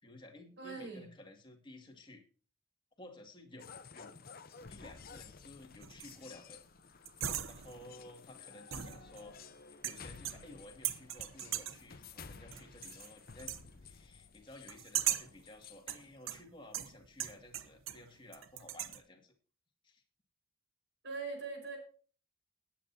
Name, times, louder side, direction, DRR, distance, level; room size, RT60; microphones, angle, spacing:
voice 1, 0.0-2.2 3.0-4.2 4.7-6.6 7.4-9.4 9.8-19.3 19.8-20.0, left 1 dB, 25° left, 2 dB, 2.3 m, -54 dB
voice 2, 0.6-1.1 21.0-21.8, right 4 dB, 60° right, 2 dB, 5.1 m, -41 dB
sound 1, 3.6-16.2, left 5 dB, 45° left, 0.9 m, -54 dB
sound 2, 5.8-6.3 7.0-7.9 8.7-9.4 9.8-10.6 10.8-11.9 12.5-13.1 13.4-13.7 14.7-15.4 15.9-18.1 18.3-19.0, right 11 dB, 80° right, 1.0 m, -39 dB
20.0 x 8.7 x 2.8 m, 0.40 s
head